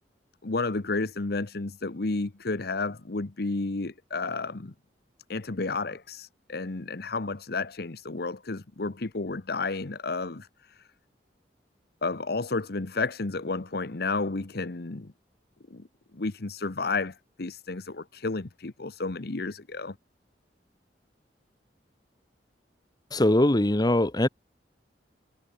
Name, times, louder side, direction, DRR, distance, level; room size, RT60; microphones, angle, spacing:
voice 1, 0.4-4.7 5.3-10.8 12.0-15.1 15.7-15.9 16.1-19.9, left 3 dB, 60° left, 1.0 m, -31 dB
voice 2, 23.1-24.3, left 1 dB, 25° left, 1.1 m, -21 dB
head